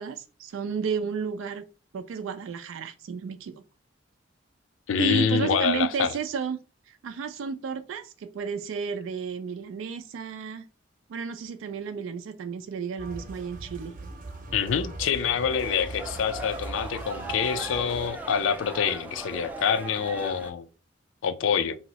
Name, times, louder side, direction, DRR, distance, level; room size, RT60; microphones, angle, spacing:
voice 1, 0.0-1.6 1.9-3.6 5.0-6.6 6.9-10.6 11.1-13.9, right 5 dB, 90° right, 0.3 m, -32 dB
voice 2, 4.9-6.1 14.5-20.7 21.2-21.8, left 7 dB, 80° left, 0.4 m, -26 dB
sound 1, 13.0-18.1, right 2 dB, 45° right, 0.6 m, -40 dB
sound 2, 15.5-20.5, right 2 dB, 10° right, 0.3 m, -38 dB
2.6 x 2.0 x 3.9 m
head